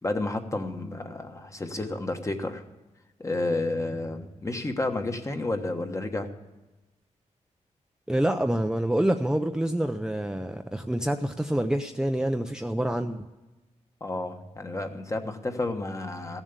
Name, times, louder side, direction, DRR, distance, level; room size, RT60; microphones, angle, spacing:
voice 1, 0.0-2.6 3.2-6.3 14.0-16.4, left 2 dB, 25° left, 5 dB, 1.3 m, -31 dB
voice 2, 8.1-13.3, right 1 dB, 5° right, 5 dB, 0.5 m, -27 dB
15.0 x 7.4 x 8.1 m, 1.1 s
wide cardioid pair, 105°, 13 cm